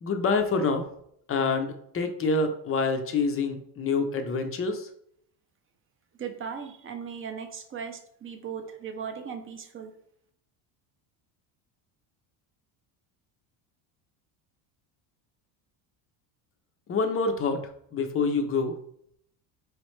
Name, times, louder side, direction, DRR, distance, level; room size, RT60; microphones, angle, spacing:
voice 1, 0.0-0.9 1.3-4.9 16.9-18.8, left 4 dB, 30° left, 6 dB, 0.5 m, -27 dB
voice 2, 6.2-9.9, right 7 dB, 25° right, 6 dB, 0.5 m, -37 dB
4.7 x 3.2 x 3.1 m, 0.68 s
cardioid pair, 130°, 49 cm